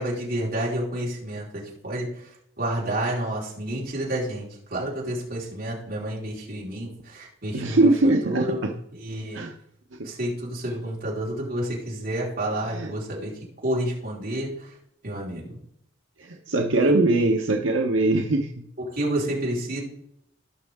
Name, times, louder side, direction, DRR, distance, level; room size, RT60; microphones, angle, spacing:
voice 1, 0.0-2.1 2.6-7.9 8.2-8.6 8.9-9.4 10.0-13.3 13.6-14.7 15.0-15.6 18.9-19.8, right 1 dB, 50° right, -5 dB, 4.5 m, -29 dB
voice 2, 7.5-8.7 9.3-9.5 12.7-12.9 16.2-18.7, right 2 dB, 85° right, 2 dB, 1.0 m, -22 dB
17.5 x 6.3 x 3.6 m, 0.72 s
head